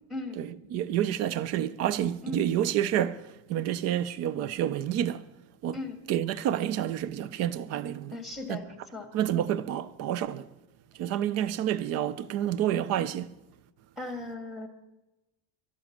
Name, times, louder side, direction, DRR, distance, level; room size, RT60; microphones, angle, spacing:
voice 1, 0.4-5.3 5.6-5.8 6.1-8.2 8.5-8.6 9.1-10.5 10.9-13.3, right 11 dB, 35° right, 0.4 m, -29 dB
voice 2, 8.1-9.1 14.0-14.7, left 2 dB, ahead, 1.5 m, -37 dB
12.0 x 12.0 x 7.2 m
cardioid pair, 170°, 48 cm